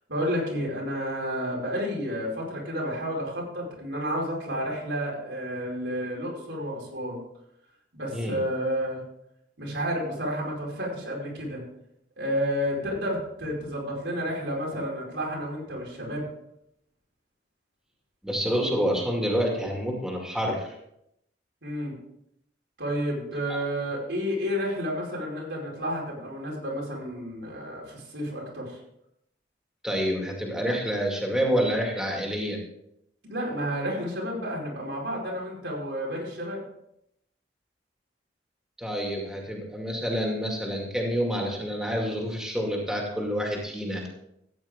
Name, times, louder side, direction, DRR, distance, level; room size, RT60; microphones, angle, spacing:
voice 1, 0.1-7.2 7.9-9.0 9.6-11.6 12.2-16.3 21.6-22.0 22.8-28.8 33.2-36.6, equal, 85° right, -3 dB, 4.8 m, -31 dB
voice 2, 18.2-20.7 29.8-32.6 38.8-44.1, equal, 5° right, -1 dB, 2.3 m, -28 dB
14.0 x 9.6 x 3.7 m, 0.78 s
head